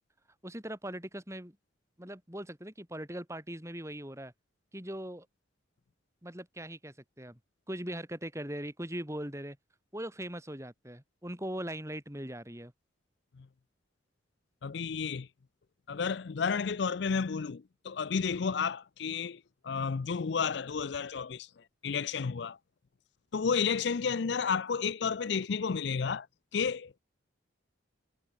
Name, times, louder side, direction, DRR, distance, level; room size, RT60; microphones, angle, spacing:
voice 1, 0.4-1.6 2.0-4.3 4.7-5.3 6.2-7.4 7.7-9.6 9.9-12.7, right 1 dB, 15° right, 4.4 m, -40 dB
voice 2, 14.6-15.3 15.9-22.6 23.3-26.3 26.5-27.0, left 6 dB, 60° left, 0.5 m, -32 dB
head